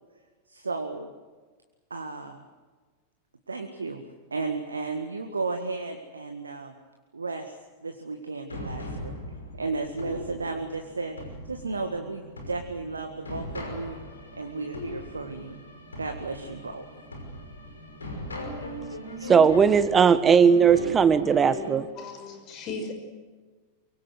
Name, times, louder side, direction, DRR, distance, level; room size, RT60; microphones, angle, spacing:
voice 1, 0.5-1.1 1.9-2.4 3.5-4.1 4.3-6.7 7.1-7.5 7.8-9.2 9.6-11.2 11.5-14.0 14.4-15.6 16.0-16.9, right 3 dB, 75° right, 5 dB, 1.8 m, -33 dB
sound 1, 8.5-21.7, left 1 dB, 75° left, 5.6 m, -39 dB
voice 2, 19.3-21.9, right 6 dB, 20° right, 14 dB, 1.4 m, -18 dB
voice 3, 21.9-22.9, left 4 dB, 35° left, 5 dB, 6.0 m, -36 dB
24.0 x 24.0 x 8.0 m, 1.4 s
figure-of-eight pair, 90°, 0 cm